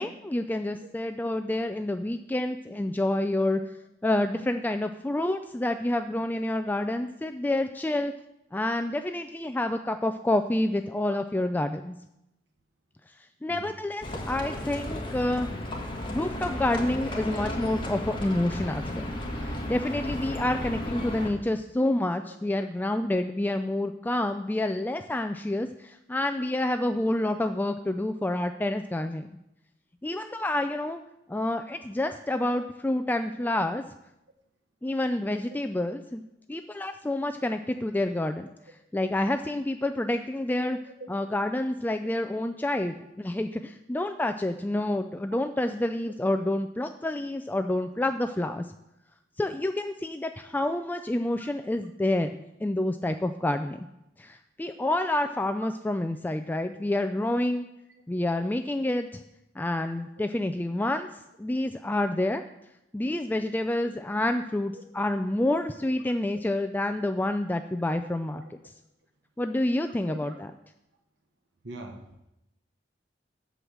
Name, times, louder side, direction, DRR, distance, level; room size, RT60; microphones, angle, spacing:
voice 1, 0.0-3.6 4.0-8.1 8.5-12.0 13.4-15.5 16.1-19.0 19.4-29.3 30.0-31.0 31.3-33.8 34.8-36.2 36.5-40.8 41.1-48.6 49.4-52.3 52.6-53.9 54.2-57.7 58.1-59.2 59.6-61.1 61.4-62.4 62.9-68.4 69.4-70.5, left 1 dB, 10° left, 7 dB, 0.3 m, -28 dB
Livestock farm animals working animals, 14.0-21.3, left 1 dB, 30° left, 1.6 m, -34 dB
voice 2, 71.6-72.0, right 2 dB, 70° right, 3 dB, 1.2 m, -43 dB
8.2 x 6.2 x 7.2 m, 0.86 s
head